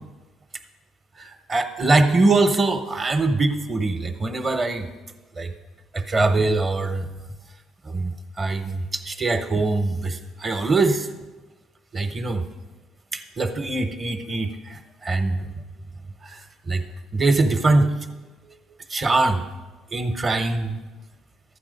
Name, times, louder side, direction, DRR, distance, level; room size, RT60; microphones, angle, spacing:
voice 1, 1.2-4.9 5.4-5.5 5.9-7.1 7.9-8.1 8.4-11.1 11.9-12.5 13.1-15.4 16.2-16.4 16.7-16.8 17.1-17.9 18.9-19.4 19.9-20.8, right 3 dB, 25° right, 7 dB, 0.9 m, -22 dB
12.0 x 8.5 x 5.3 m, 1.2 s
cardioid pair, 130°, 0 cm